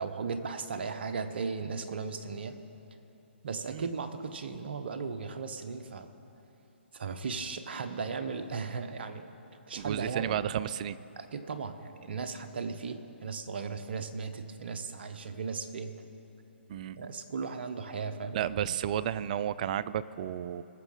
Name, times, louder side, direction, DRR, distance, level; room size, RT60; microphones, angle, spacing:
voice 1, 0.0-2.6 3.4-6.1 6.9-9.3 9.7-10.5 11.2-16.0 17.0-18.8, right 5 dB, 60° right, 8 dB, 0.9 m, -36 dB
voice 2, 9.8-11.0 16.7-17.0 18.3-20.6, right 10 dB, 40° right, 17 dB, 0.3 m, -32 dB
20.5 x 7.1 x 3.9 m, 3.0 s
figure-of-eight pair, 140°, 6 cm